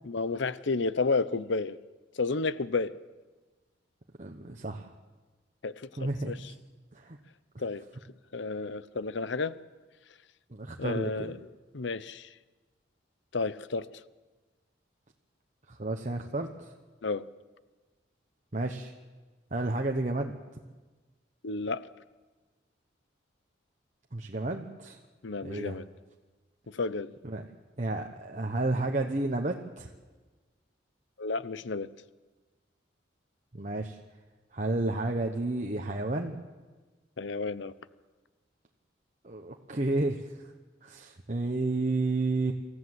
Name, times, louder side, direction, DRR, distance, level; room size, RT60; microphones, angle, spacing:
voice 1, 0.0-1.8 2.1-3.0 5.6-6.5 7.6-7.8 8.3-9.5 10.8-11.4 11.7-12.3 13.3-13.9 17.0-17.2 21.4-21.8 25.2-25.8 26.7-27.2 31.2-31.9 37.2-37.7, left 3 dB, 65° left, 16 dB, 0.7 m, -31 dB
voice 2, 4.2-4.9 6.0-6.5 6.9-7.2 10.5-11.3 15.7-16.7 18.5-18.9 19.5-20.4 24.1-25.0 25.4-25.8 27.2-27.4 27.8-29.9 33.5-34.0 34.5-36.4 39.2-40.5 40.8-42.5, right 2 dB, 40° right, 2 dB, 1.1 m, -31 dB
26.5 x 14.5 x 8.0 m, 1.3 s
head